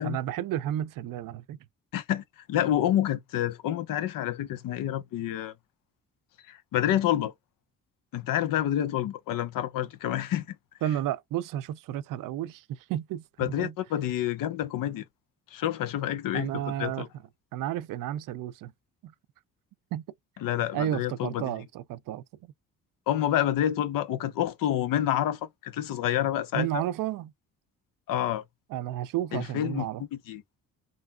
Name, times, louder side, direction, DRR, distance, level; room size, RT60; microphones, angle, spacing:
voice 1, 0.0-1.6 10.8-13.7 16.3-17.0 17.5-18.7 19.0-19.1 19.9-20.0 20.7-22.2 26.5-27.3 28.7-30.0, right 12 dB, 70° right, 0.5 m, -32 dB
voice 2, 1.9-5.5 6.5-7.3 8.1-10.6 13.4-15.1 15.5-17.1 20.4-21.5 23.1-26.8 28.1-28.4 29.3-29.9 30.1-30.4, left 11 dB, 70° left, 0.6 m, -28 dB
3.8 x 2.0 x 2.2 m
supercardioid pair, 70°, 34 cm